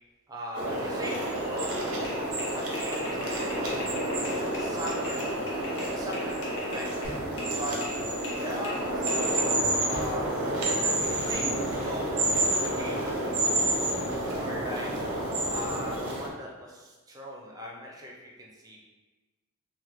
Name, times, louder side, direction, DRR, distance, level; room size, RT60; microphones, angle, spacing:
voice 1, 0.3-1.8 2.5-3.8 4.3-5.2 5.8-6.9 7.5-7.8 8.4-9.4 9.8-12.1 12.6-14.9 15.5-18.1 18.4-18.8, equal, 15° right, -2 dB, 0.4 m, -40 dB
sound 1, 0.5-16.3, right 1 dB, 85° right, 0.6 m, -29 dB
sound 2, 2.0-7.6 7.8-9.4, left 1 dB, 50° left, 0.7 m, -41 dB
sound 3, 7.0-8.0 9.9-10.8, equal, 70° left, 1.1 m, -42 dB
2.9 x 2.1 x 3.2 m, 1.2 s
head